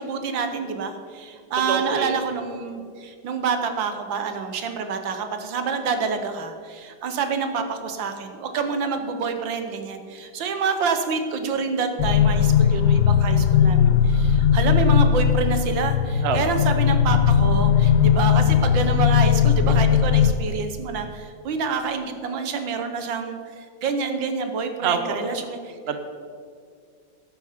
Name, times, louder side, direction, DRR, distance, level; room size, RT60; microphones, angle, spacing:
voice 1, 0.0-25.8, right 5 dB, 75° right, 7 dB, 1.8 m, -27 dB
voice 2, 1.7-2.1 16.2-16.4 24.8-25.3 25.9-26.0, right 6 dB, 40° right, 7 dB, 1.1 m, -25 dB
sound 1, 12.0-20.3, left 8 dB, 85° left, 1.4 m, -18 dB
14.0 x 11.5 x 5.1 m, 2.2 s
omnidirectional pair, 2.1 m